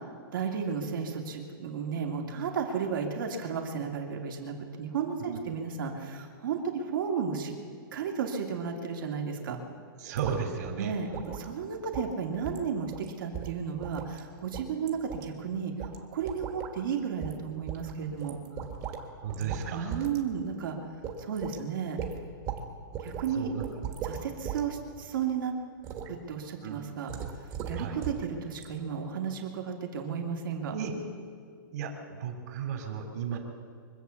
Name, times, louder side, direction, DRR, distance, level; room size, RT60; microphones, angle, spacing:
voice 1, 0.3-7.5 7.9-9.6 10.8-18.4 19.4-20.7 21.2-22.0 23.0-23.5 24.0-25.5 26.1-27.1 27.7-30.7 33.3-33.4, right 6 dB, 65° right, 2 dB, 2.5 m, -33 dB
voice 2, 10.0-11.2 19.1-20.1 23.3-23.7 26.6-27.0 27.8-28.0 30.7-30.9 31.7-33.4, right 7 dB, 50° right, 3 dB, 2.9 m, -35 dB
sound 1, 10.2-10.4 10.6-10.7 11.1-11.5 11.9-12.1 12.4-12.7 12.9-13.1 13.3-14.2 14.5-15.3 15.8-16.0 16.3-16.7 17.2-17.4 17.7-19.0 19.3-19.7 19.9-20.2 20.5-20.6 21.0-21.6 22.0-22.6 22.9-23.3 23.6-24.6 25.0-25.2 25.8-26.1 27.1-28.2 28.5-28.6, right 8 dB, 25° right, 1.5 m, -38 dB
24.0 x 8.4 x 7.1 m, 2.3 s
hypercardioid pair, 165°, 12 cm